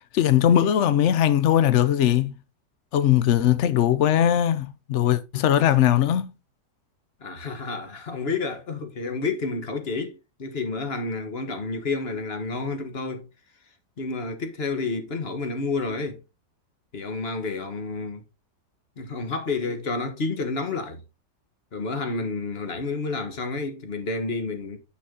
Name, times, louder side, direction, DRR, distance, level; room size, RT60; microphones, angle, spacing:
voice 1, 0.1-2.3 2.9-6.3, left 10 dB, 80° left, 0.6 m, -20 dB
voice 2, 7.2-13.3 14.0-16.2 16.9-18.2 19.0-21.0 21.7-24.8, left 3 dB, 35° left, 1.5 m, -30 dB
8.4 x 6.1 x 3.7 m
omnidirectional pair, 1.9 m